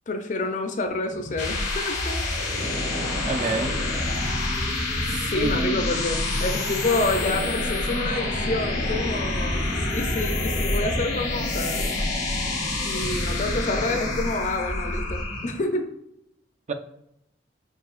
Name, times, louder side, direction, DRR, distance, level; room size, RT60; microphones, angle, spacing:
voice 1, 0.1-2.2 5.3-11.8 12.8-15.9, left 2 dB, 45° left, 6 dB, 0.6 m, -28 dB
sound 1, 1.1-15.6, left 2 dB, 90° left, 1.2 m, -27 dB
voice 2, 3.3-3.8 5.1-6.0 16.7-16.8, right 3 dB, 40° right, 6 dB, 0.4 m, -28 dB
5.7 x 2.8 x 2.4 m, 0.77 s
head